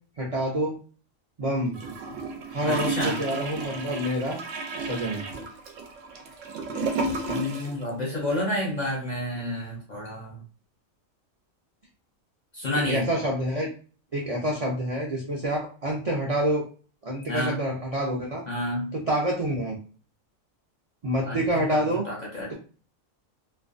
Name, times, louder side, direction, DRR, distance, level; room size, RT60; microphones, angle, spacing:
voice 1, 0.2-0.8 1.4-1.8 2.5-4.4 4.8-5.2 12.8-13.7 14.1-16.7 17.0-18.4 19.1-19.8 21.0-22.1, equal, 55° right, -3 dB, 0.4 m, -27 dB
Gurgling / Toilet flush, 1.7-7.8 8.1-8.2, right 3 dB, 75° right, 0.9 m, -32 dB
voice 2, 2.7-3.2 7.2-10.4 12.5-13.1 17.3-17.6 18.5-19.0 21.3-22.5, left 1 dB, 50° left, -2 dB, 0.5 m, -30 dB
2.5 x 2.1 x 2.4 m, 0.38 s
omnidirectional pair, 1.4 m